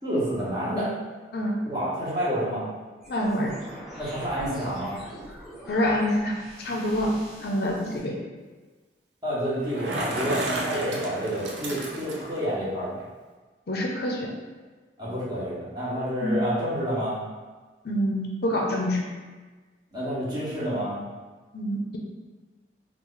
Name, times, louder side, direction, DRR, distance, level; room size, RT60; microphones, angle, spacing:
voice 1, 0.0-0.9 1.7-2.6 4.0-4.9 9.2-13.0 15.0-17.2 19.9-21.0, equal, 25° right, -9 dB, 1.0 m, -29 dB
sound 1, 3.0-8.0, equal, 5° right, 1.0 m, -44 dB
voice 2, 3.1-3.6 5.7-7.1 7.4-8.2 13.7-14.3 16.2-16.4 17.8-19.0 21.5-22.0, equal, 60° left, 0 dB, 0.5 m, -26 dB
Bicycle, 9.5-12.4, right 1 dB, 75° right, 0.6 m, -32 dB
3.0 x 2.4 x 3.7 m, 1.3 s
head